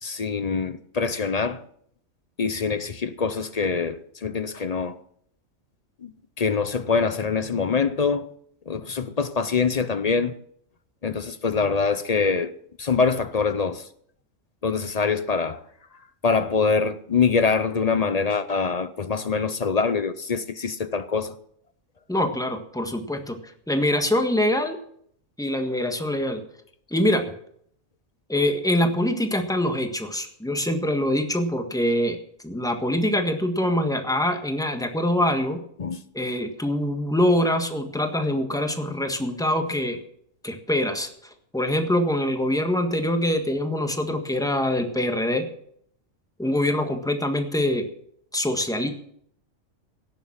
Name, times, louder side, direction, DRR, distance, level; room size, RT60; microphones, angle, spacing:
voice 1, 0.0-1.6 2.4-5.0 6.0-6.1 6.4-8.3 8.7-10.4 11.0-13.9 14.6-15.6 16.2-21.3 35.8-36.0, left 5 dB, 45° left, 0.5 m, -24 dB
voice 2, 22.1-23.4 23.7-24.8 25.4-26.4 26.9-27.2 28.3-32.2 32.4-35.6 36.1-40.0 40.4-41.1 41.5-45.5 46.4-47.9 48.3-48.9, left 1 dB, 5° left, 1.4 m, -24 dB
17.5 x 7.2 x 7.3 m
omnidirectional pair, 1.4 m